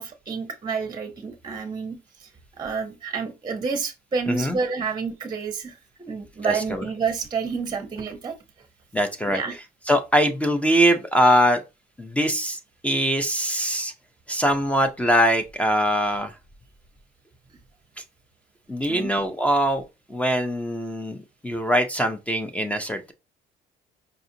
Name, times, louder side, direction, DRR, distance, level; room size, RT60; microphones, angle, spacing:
voice 1, 0.0-2.3 2.6-5.8 6.1-8.3 9.3-9.5 18.9-19.1, right 5 dB, 25° right, 0.7 m, -29 dB
voice 2, 4.3-4.6 6.4-6.9 8.9-9.4 9.9-11.6 12.0-12.6 12.8-13.9 14.3-16.3 18.7-19.8 20.1-23.0, equal, 10° left, 0.5 m, -22 dB
5.0 x 2.4 x 2.7 m
cardioid pair, 110°, 17 cm